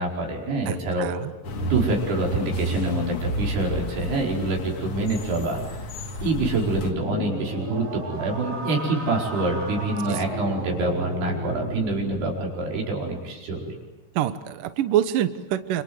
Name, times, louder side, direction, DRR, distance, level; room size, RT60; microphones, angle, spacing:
voice 1, 0.0-1.1 1.7-5.8 6.2-13.8, right 2 dB, 55° right, 0 dB, 6.8 m, -26 dB
voice 2, 0.7-1.3 10.1-10.2 14.2-15.8, right 11 dB, 80° right, 11 dB, 1.9 m, -26 dB
sound 1, 1.4-6.9, equal, 45° left, 1.9 m, -31 dB
sound 2, 6.4-12.3, right 2 dB, 25° right, 7.5 m, -33 dB
28.0 x 27.0 x 7.9 m, 1.1 s
omnidirectional pair, 5.5 m